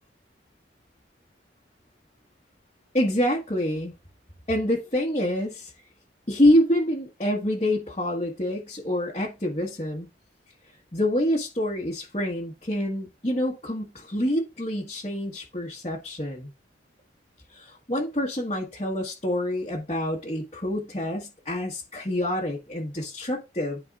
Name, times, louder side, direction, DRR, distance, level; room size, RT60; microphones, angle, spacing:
voice 1, 2.9-3.9 4.5-5.7 6.3-10.1 10.9-16.5 17.5-23.8, left 1 dB, 35° left, 1.5 m, -26 dB
12.0 x 4.7 x 2.5 m
head